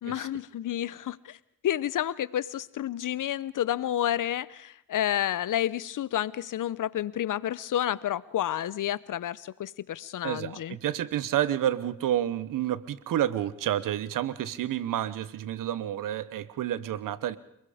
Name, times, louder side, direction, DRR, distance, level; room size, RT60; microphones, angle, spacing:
voice 1, 0.0-1.4 1.6-10.8, left 11 dB, 80° left, 20 dB, 0.8 m, -30 dB
voice 2, 10.2-17.4, right 11 dB, 90° right, 17 dB, 1.0 m, -29 dB
29.0 x 21.0 x 5.0 m, 0.80 s
supercardioid pair, 45°, 31 cm